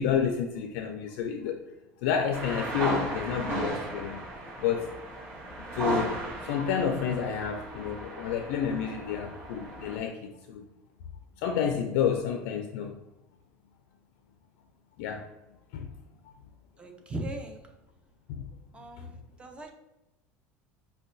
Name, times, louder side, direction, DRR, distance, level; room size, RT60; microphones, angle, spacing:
voice 1, 0.0-1.6 2.0-4.2 4.6-5.0 5.7-10.7 11.4-13.0 15.0-15.3 15.7-15.9 18.3-18.5 19.0-19.1, left 7 dB, 75° left, 5 dB, 0.4 m, -30 dB
sound 1, 2.3-10.0, right 1 dB, 35° right, 1.3 m, -35 dB
voice 2, 16.8-17.7 18.7-19.7, right 1 dB, 15° right, 3 dB, 0.6 m, -39 dB
5.4 x 2.2 x 2.6 m, 0.95 s
supercardioid pair, 120°, 7 cm